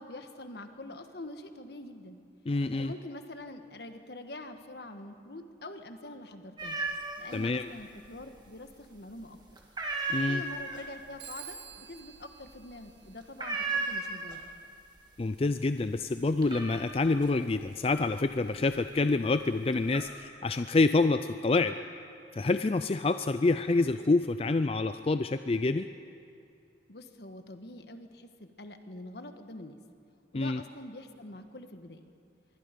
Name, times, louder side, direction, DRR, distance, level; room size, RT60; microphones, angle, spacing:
voice 1, 0.0-2.2 2.6-6.8 7.2-9.4 10.3-14.5 26.9-29.8 30.3-32.1, left 2 dB, 65° left, 7 dB, 1.4 m, -45 dB
voice 2, 2.5-2.9 7.3-7.7 10.1-10.4 15.2-21.8 22.3-25.9 30.3-30.6, left 3 dB, 35° left, 10 dB, 0.4 m, -27 dB
sound 1, 6.6-7.4 7.7-8.5 8.8-9.2 9.6-14.7 15.0-15.5 15.8-19.0 19.5-20.1, right 3 dB, 25° right, 2.1 m, -35 dB
Telephone, 11.2-13.7, right 8 dB, 75° right, 1.7 m, -49 dB
26.0 x 23.0 x 5.2 m, 2.5 s
head